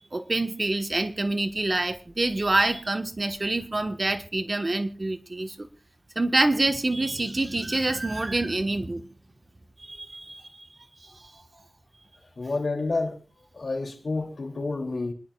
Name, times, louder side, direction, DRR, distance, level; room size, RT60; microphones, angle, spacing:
voice 1, 0.1-5.7 6.1-9.1 9.8-10.6 11.0-11.3, right 2 dB, 40° right, 1.4 m, -26 dB
voice 2, 12.4-13.2 13.5-15.1, left 3 dB, 70° left, 3.1 m, -29 dB
27.0 x 10.5 x 2.5 m
wide cardioid pair, 60°, 0 cm